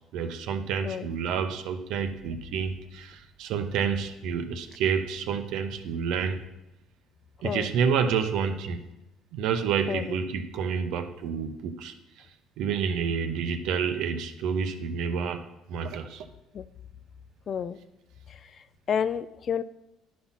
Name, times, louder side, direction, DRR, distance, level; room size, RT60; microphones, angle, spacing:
voice 1, 0.1-6.4 7.4-8.8 9.3-11.9 12.6-16.3, right 6 dB, 75° right, 8 dB, 0.9 m, -29 dB
voice 2, 9.9-10.2 16.5-16.6 17.5-17.8 18.3-19.6, left 7 dB, 45° left, 15 dB, 0.4 m, -31 dB
11.0 x 4.3 x 5.7 m, 0.94 s
cardioid pair, 110°, 0 cm